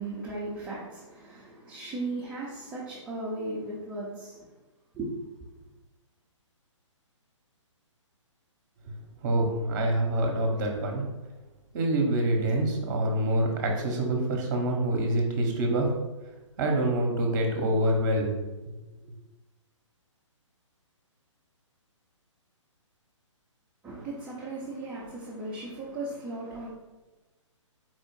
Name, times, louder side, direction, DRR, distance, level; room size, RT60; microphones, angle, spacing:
voice 1, 0.0-4.4 4.9-5.1 23.8-26.7, right 2 dB, 10° right, -8 dB, 0.8 m, -36 dB
voice 2, 9.2-11.0 11.7-15.9 16.6-18.4, right 1 dB, 40° right, 2 dB, 1.0 m, -26 dB
4.5 x 2.4 x 4.6 m, 1.1 s
figure-of-eight pair, 135°, 16 cm